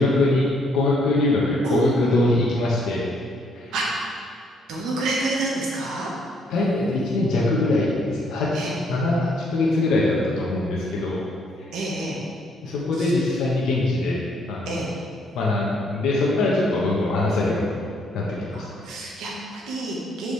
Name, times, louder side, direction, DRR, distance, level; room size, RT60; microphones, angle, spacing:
voice 1, 0.0-3.0 3.5-3.7 6.5-11.2 12.6-14.2 14.5-14.7 15.3-17.7 18.1-18.6, left 2 dB, 80° left, -5 dB, 1.1 m, -22 dB
voice 2, 4.7-6.1 8.5-8.8 11.7-12.2 12.9-13.1 14.6-14.9 18.5-20.3, right 2 dB, 80° right, -3 dB, 1.4 m, -28 dB
7.2 x 4.8 x 3.3 m, 2.5 s
cardioid pair, 90°, 0 cm